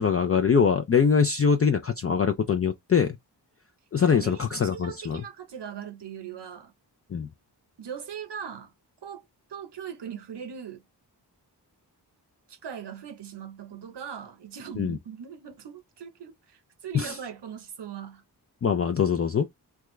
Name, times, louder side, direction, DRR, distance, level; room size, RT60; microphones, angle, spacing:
voice 1, 0.0-3.2 3.9-5.2 7.1-7.3 14.8-15.0 16.9-17.1 18.6-19.5, left 6 dB, 35° left, 0.4 m, -23 dB
voice 2, 4.0-6.7 7.8-8.7 9.0-10.8 12.5-18.2, right 8 dB, 80° right, 0.9 m, -40 dB
3.5 x 2.3 x 3.1 m
wide cardioid pair, 100°, 41 cm